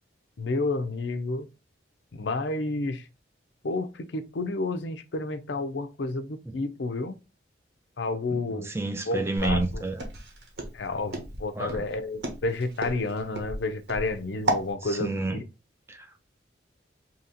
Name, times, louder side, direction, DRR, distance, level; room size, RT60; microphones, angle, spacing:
voice 1, 0.4-1.5 2.1-3.1 3.6-7.2 8.0-8.7 9.1-9.8 10.7-15.4, left 2 dB, 70° left, 0.5 m, -30 dB
voice 2, 8.5-10.0 11.5-11.8 14.8-15.4 15.9-16.2, right 2 dB, 15° right, 0.3 m, -30 dB
Walk footsteps, 9.4-14.7, right 1 dB, 65° right, 1.0 m, -32 dB
2.9 x 2.8 x 3.8 m
head